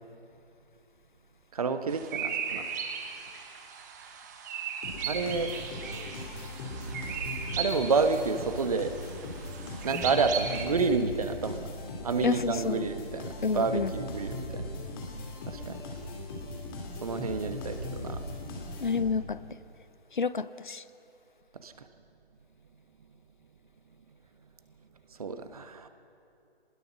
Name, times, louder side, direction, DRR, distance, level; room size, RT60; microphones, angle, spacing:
voice 1, 1.5-2.7 5.1-5.5 7.6-9.0 9.8-11.7 12.0-14.7 15.4-15.8 17.0-18.2 21.6-21.9 25.2-25.9, right 4 dB, 35° right, 9 dB, 1.3 m, -29 dB
sound 1, 1.9-10.7, right 6 dB, 15° right, 1.3 m, -37 dB
sound 2, 4.8-19.4, left 1 dB, 25° left, 2.9 m, -39 dB
voice 2, 12.2-12.8 13.4-13.9 18.8-19.4 20.1-20.8, left 5 dB, 50° left, 16 dB, 0.7 m, -29 dB
24.5 x 20.0 x 6.2 m, 2.6 s
figure-of-eight pair, 145°, 31 cm